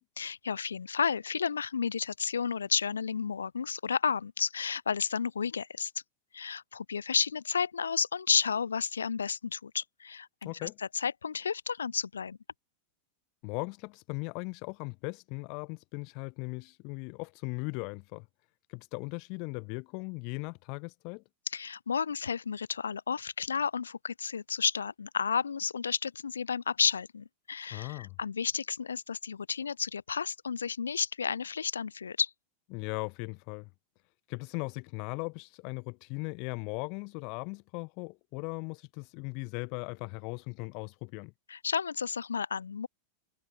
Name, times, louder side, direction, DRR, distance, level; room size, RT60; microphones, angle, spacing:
voice 1, 0.2-5.9 6.3-10.7 10.9-12.4 21.5-32.3 41.5-42.9, left 6 dB, 70° left, 3.8 m, -32 dB
voice 2, 10.4-10.8 13.4-18.3 18.7-21.2 27.7-28.2 32.7-33.7 34.3-41.3, left 33 dB, 45° left, 2.2 m, -38 dB
figure-of-eight pair, 90°, 0 cm